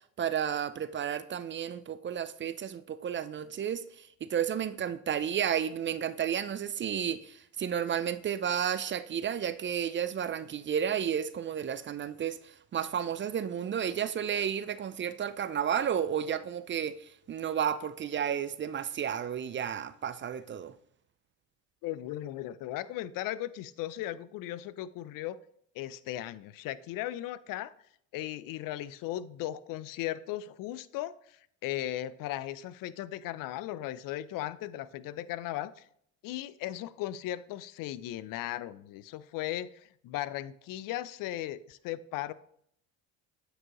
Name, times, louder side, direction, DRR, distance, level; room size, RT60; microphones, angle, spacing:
voice 1, 0.2-20.7, right 8 dB, 30° right, 0.4 m, -32 dB
voice 2, 21.8-25.4 25.7-27.7 28.1-35.9 36.2-42.3, left 13 dB, 60° left, 0.5 m, -37 dB
8.7 x 4.7 x 3.0 m
hypercardioid pair, 65°, 38 cm